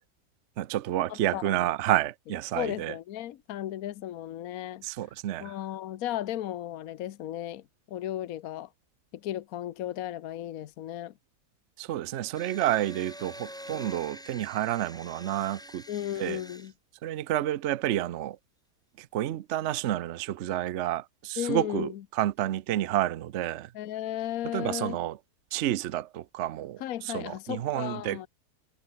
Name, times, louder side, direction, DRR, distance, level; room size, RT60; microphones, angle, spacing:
voice 1, 0.6-2.9 4.8-5.5 11.8-15.8 16.2-16.4 17.0-18.4 19.0-23.7 24.5-25.2 25.5-28.3, right 13 dB, 60° right, 0.8 m, -30 dB
voice 2, 1.1-1.7 2.5-4.8 5.4-8.7 9.2-11.1 15.9-16.7 21.4-22.0 23.7-25.0 26.8-28.3, left 12 dB, 65° left, 1.2 m, -35 dB
sound 1, 12.3-16.7, equal, ahead, 5.4 m, -46 dB
omnidirectional pair, 1.7 m